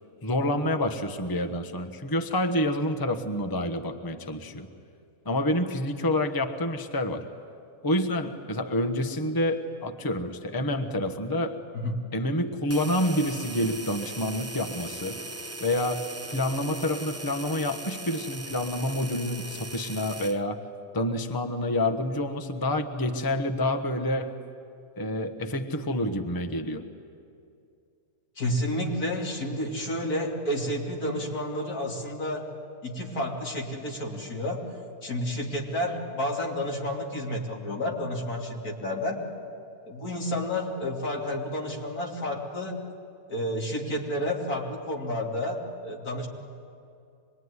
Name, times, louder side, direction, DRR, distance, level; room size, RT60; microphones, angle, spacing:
voice 1, 0.2-4.7 5.2-7.2 7.8-11.6 12.1-15.2 15.6-20.6 20.9-24.4 25.0-26.8, left 1 dB, 15° left, 6 dB, 1.1 m, -28 dB
sound 1, 12.7-20.4, right 2 dB, 15° right, 0.7 m, -39 dB
voice 2, 28.4-32.5 32.8-34.6 35.0-39.2 39.9-42.8 43.3-46.3, left 1 dB, 80° left, -1 dB, 3.4 m, -30 dB
25.5 x 21.5 x 9.7 m, 2.5 s
omnidirectional pair, 1.6 m